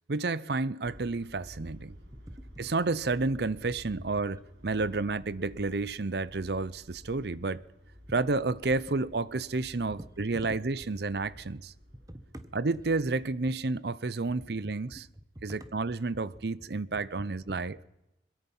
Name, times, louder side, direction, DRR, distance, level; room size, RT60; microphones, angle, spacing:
voice 1, 0.1-1.9 2.6-7.6 8.1-11.7 12.5-15.0 15.4-17.8, right 3 dB, 60° right, 0.7 m, -30 dB
sound 1, 0.8-13.3, equal, 75° right, 4.5 m, -52 dB
voice 2, 2.0-2.7 4.0-4.1 10.0-10.1 10.4-11.0 11.3-11.4 12.1-12.5 14.3-15.7 16.1-16.2 16.6-17.1 17.5-17.6, right 1 dB, 20° right, 1.5 m, -47 dB
22.0 x 21.5 x 5.6 m
head